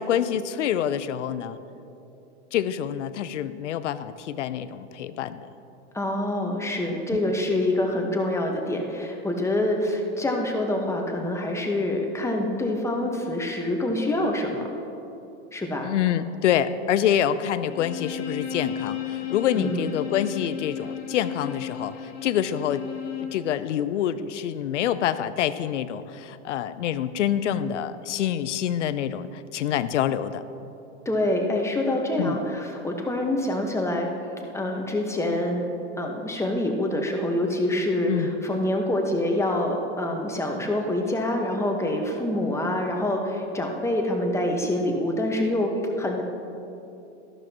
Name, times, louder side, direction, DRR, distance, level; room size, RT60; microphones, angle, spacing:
voice 1, 0.0-1.6 2.5-5.5 15.8-22.8 23.3-30.4 32.2-32.4 38.1-38.3, left 10 dB, 90° left, 14 dB, 0.6 m, -26 dB
voice 2, 5.9-14.7 15.5-15.9 19.5-19.9 31.0-34.1 34.5-35.7 36.0-45.7 46.0-46.2, left 1 dB, 10° left, 1 dB, 1.3 m, -26 dB
Bowed string instrument, 17.6-23.4, left 9 dB, 45° left, 1.8 m, -34 dB
13.0 x 11.5 x 3.0 m, 2.8 s
hypercardioid pair, 110°, 35 cm